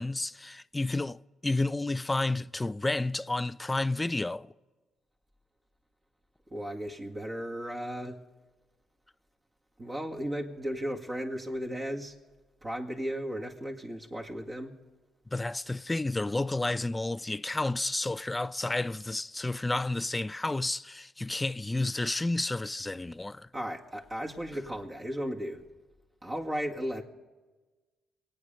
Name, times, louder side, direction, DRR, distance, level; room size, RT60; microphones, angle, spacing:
voice 1, 0.0-4.5 15.3-23.5, left 2 dB, 15° left, 0.4 m, -31 dB
voice 2, 6.5-8.2 9.8-12.2 12.6-14.7 23.5-25.6 26.2-27.0, equal, 25° right, 1.9 m, -35 dB
23.5 x 9.0 x 5.4 m
cardioid pair, 90°, 0 cm